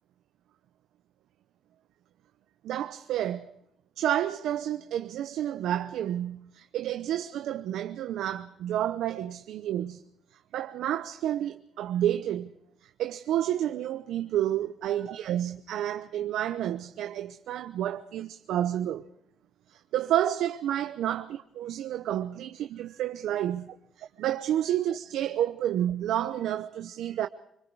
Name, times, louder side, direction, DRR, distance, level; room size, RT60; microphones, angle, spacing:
voice 1, 2.6-3.5 4.0-10.0 10.5-12.5 12.8-19.1 19.7-27.3, right 11 dB, 80° right, 0.8 m, -30 dB
25.0 x 21.5 x 4.8 m
cardioid pair, 90°, 0 cm